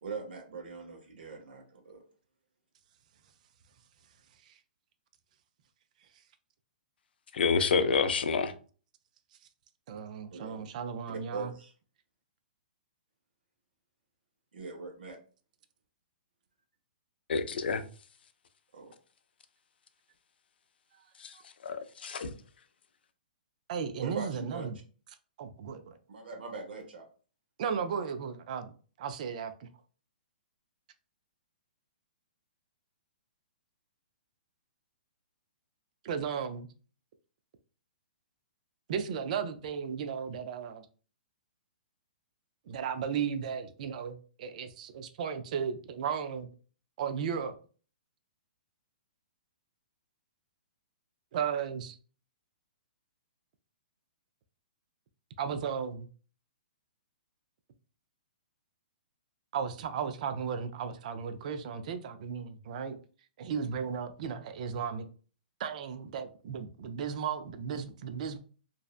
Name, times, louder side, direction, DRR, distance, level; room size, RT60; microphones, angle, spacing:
voice 1, 0.0-2.0 10.3-10.7 11.3-11.7 14.5-15.2 18.7-18.9 24.0-24.7 26.1-27.1, right 4 dB, 75° right, 0.9 m, -41 dB
voice 2, 7.3-8.5 17.3-17.8 21.2-21.3 21.6-22.3, left 5 dB, 80° left, 0.4 m, -28 dB
voice 3, 9.9-11.5 21.3-21.4 23.7-24.8 25.4-26.0 27.6-28.7 29.0-29.7 36.0-36.7 38.9-40.9 42.7-46.5 47.0-47.6 51.3-52.0 55.4-56.1 59.5-63.0 63.4-65.1 65.6-68.4, right 7 dB, 50° right, 0.3 m, -35 dB
2.6 x 2.1 x 2.3 m
hypercardioid pair, 155°, 5 cm